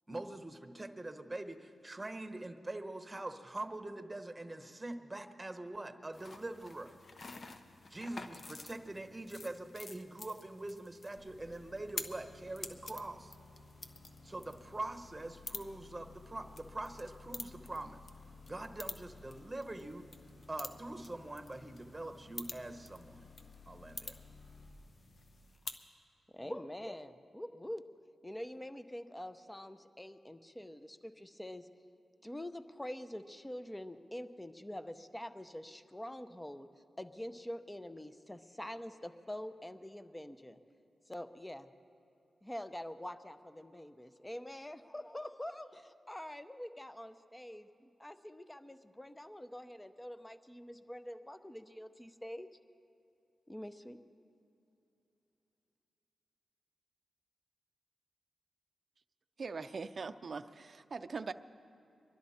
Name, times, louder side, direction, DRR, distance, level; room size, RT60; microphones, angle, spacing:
voice 1, 0.1-6.9 7.9-13.3 14.2-18.0 18.5-20.1 20.5-23.2 23.7-24.2, right 2 dB, 20° right, 8 dB, 1.1 m, -43 dB
sound 1, 6.1-25.9, left 3 dB, 50° left, 0.9 m, -50 dB
sound 2, 11.2-24.7, left 3 dB, 70° left, 3.9 m, -57 dB
voice 2, 26.3-27.8 28.2-31.7 32.2-36.7 37.0-40.6 41.1-41.7 42.4-52.5 53.5-54.0, left 1 dB, 15° left, 11 dB, 0.8 m, -45 dB
voice 3, 59.4-61.3, right 4 dB, 55° right, 10 dB, 0.5 m, -41 dB
23.0 x 12.0 x 4.3 m, 2.8 s
cardioid pair, 55°, 0 cm